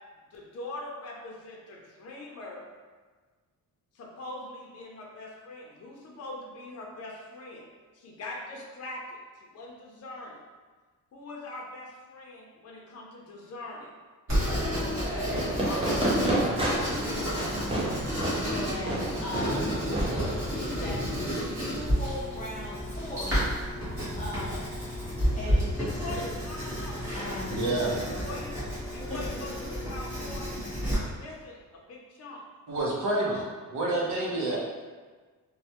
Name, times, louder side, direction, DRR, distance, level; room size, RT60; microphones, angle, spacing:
voice 1, 0.3-2.7 3.9-7.7 7.9-10.4 11.1-13.9 15.6-17.4 25.8-27.8 28.0-28.5 28.9-30.5 31.0-32.4 33.2-33.5, left 2 dB, 50° left, -2 dB, 0.5 m, -42 dB
Writing, 14.3-30.9, equal, 35° right, 1.3 m, -31 dB
voice 2, 14.7-15.4 18.5-19.8 20.0-23.8 24.1-24.6 25.4-26.2 27.1-27.5 29.1-29.5, left 1 dB, 20° left, -8 dB, 0.8 m, -39 dB
Fireworks, 15.3-20.8, right 1 dB, 15° right, 0.4 m, -30 dB
voice 3, 27.5-28.0 32.7-33.4 33.7-34.6, right 2 dB, 60° right, -4 dB, 0.7 m, -28 dB
3.1 x 2.1 x 2.8 m, 1.4 s
wide cardioid pair, 165°, 34 cm